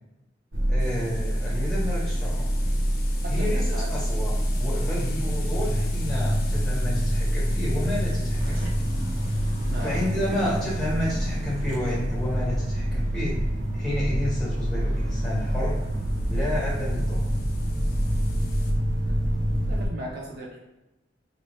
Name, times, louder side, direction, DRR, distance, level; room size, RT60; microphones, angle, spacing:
sound 1, 0.5-19.9, equal, 85° right, 0.8 m, -26 dB
voice 1, 0.7-2.5 3.3-8.6 9.8-13.4 13.7-15.8 16.3-17.3, left 1 dB, 5° left, -7 dB, 1.2 m, -31 dB
sound 2, 0.8-12.3 15.2-18.7, left 5 dB, 50° left, 0.5 m, -46 dB
voice 2, 3.2-3.9 9.6-10.0 10.3-10.4 19.7-20.6, right 2 dB, 55° right, -1 dB, 0.4 m, -37 dB
2.7 x 2.6 x 3.2 m, 0.97 s
head